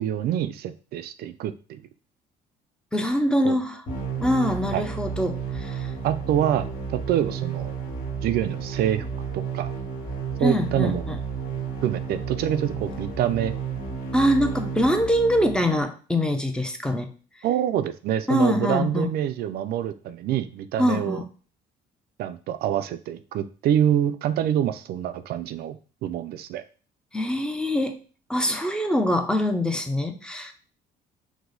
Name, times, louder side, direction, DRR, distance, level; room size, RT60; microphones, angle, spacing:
voice 1, 0.0-1.8 3.4-3.6 4.7-4.8 6.0-7.7 8.2-9.1 9.3-9.7 10.4-11.0 11.8-13.5 17.4-21.2 22.2-26.6, right 10 dB, 65° right, 11 dB, 0.4 m, -26 dB
voice 2, 2.9-3.8 4.2-5.9 10.4-11.2 14.1-17.1 18.3-19.1 20.8-21.2 27.1-28.0 28.3-30.5, equal, 5° left, 6 dB, 0.6 m, -24 dB
sound 1, 3.9-15.8, right 6 dB, 55° left, 1.6 m, -32 dB
4.7 x 2.1 x 3.9 m, 0.38 s
cardioid pair, 110°, 17 cm